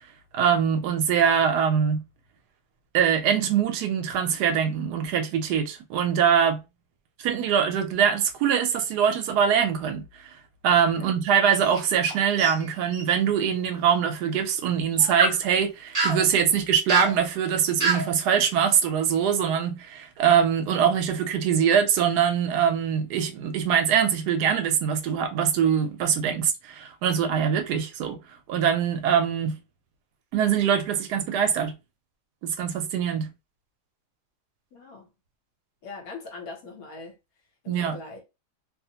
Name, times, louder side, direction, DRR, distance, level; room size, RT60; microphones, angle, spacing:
voice 1, 0.3-2.0 2.9-6.6 7.2-10.3 10.6-28.2 28.5-29.6 30.3-31.8 32.4-33.3 37.7-38.0, right 8 dB, 80° right, 1.1 m, -23 dB
sound 1, 11.5-12.1 12.4-13.0 14.9-15.3 15.9-16.2 16.9-17.2 17.8-18.1, right 4 dB, 20° right, 1.1 m, -25 dB
voice 2, 34.7-35.1 35.8-37.1 37.6-38.2, left 3 dB, 65° left, 1.2 m, -41 dB
2.8 x 2.0 x 2.7 m
omnidirectional pair, 1.7 m